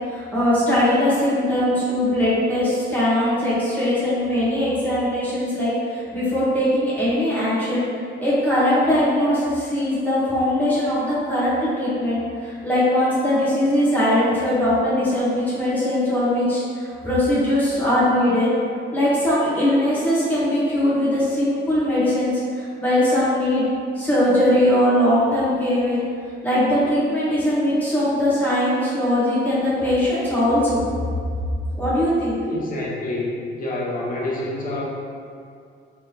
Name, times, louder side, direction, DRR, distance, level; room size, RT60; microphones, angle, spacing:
voice 1, 0.1-7.9 8.2-18.5 18.9-23.7 23.9-26.0 26.4-30.8 31.8-32.4, left 1 dB, 10° left, -10 dB, 1.2 m, -20 dB
voice 2, 32.5-34.8, left 2 dB, 45° left, -5 dB, 1.0 m, -27 dB
3.3 x 3.2 x 2.9 m, 2.4 s
cardioid pair, 90°, 20 cm